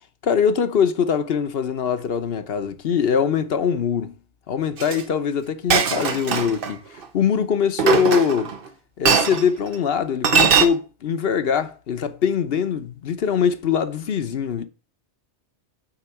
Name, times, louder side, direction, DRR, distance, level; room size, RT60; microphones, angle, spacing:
voice 1, 0.2-4.1 4.5-6.8 7.1-8.5 9.0-14.6, left 7 dB, 60° left, 1.0 m, -22 dB
Chink clink, 4.8-5.0 5.7-6.7 7.8-8.6 9.0-9.4 10.2-10.7, right 6 dB, 55° right, 1.0 m, -19 dB
8.9 x 4.2 x 7.0 m
omnidirectional pair, 1.2 m